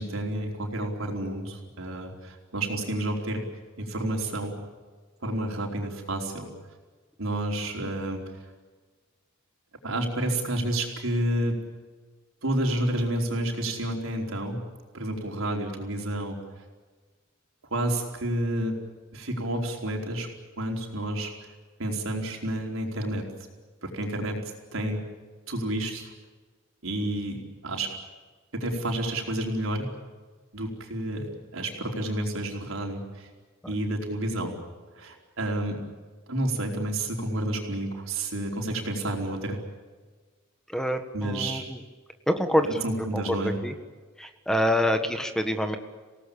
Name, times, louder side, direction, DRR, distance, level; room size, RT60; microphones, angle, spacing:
voice 1, 0.0-3.4 3.8-4.6 5.2-6.5 7.2-8.2 9.8-11.6 12.4-14.6 14.9-16.4 17.7-18.8 19.1-20.3 20.6-21.3 21.8-23.3 23.8-24.4 24.7-25.0 25.5-26.1 26.8-27.9 28.5-29.9 30.5-33.3 33.7-34.5 35.0-35.8 36.3-39.6 41.1-41.6 42.6-43.5, right 1 dB, 85° right, 1 dB, 4.7 m, -30 dB
voice 2, 40.7-41.8 42.3-42.8 43.1-43.7 44.2-45.8, equal, 5° left, 7 dB, 1.5 m, -26 dB
28.0 x 18.0 x 8.7 m, 1.4 s
head